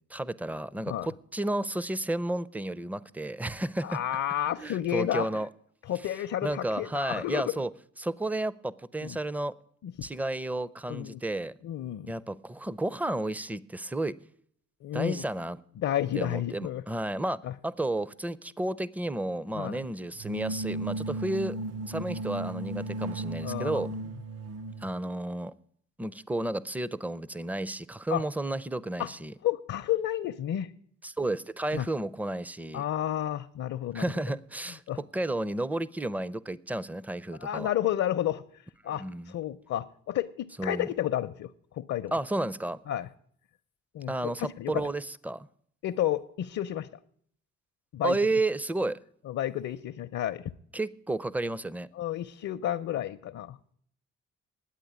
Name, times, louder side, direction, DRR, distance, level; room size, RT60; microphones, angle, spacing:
voice 1, 0.1-4.0 4.6-5.5 6.4-7.7 8.0-9.5 10.0-11.5 12.1-14.2 14.9-15.6 16.1-21.6 21.9-24.0 24.8-25.5 26.0-29.3 31.0-32.8 33.9-37.7 38.9-39.3 40.6-40.9 42.1-42.8 44.1-45.5 48.0-49.0 50.7-51.9, right 2 dB, 5° right, 0.4 m, -32 dB
voice 2, 3.8-5.3 5.9-7.5 9.0-9.2 9.8-10.1 10.9-11.2 11.6-12.1 14.8-15.2 15.8-16.8 17.4-17.5 19.5-19.8 23.4-23.9 28.1-28.2 29.0-29.1 29.4-30.7 31.7-31.9 32.7-34.1 34.9-35.0 37.4-38.4 38.8-40.3 40.6-42.1 42.9-43.1 43.9-44.8 45.8-46.9 47.9-48.2 49.3-50.5 52.0-53.7, left 12 dB, 60° left, 0.6 m, -31 dB
sound 1, 20.2-24.9, right 2 dB, 55° right, 0.6 m, -35 dB
10.0 x 8.4 x 9.3 m
cardioid pair, 90°, 30 cm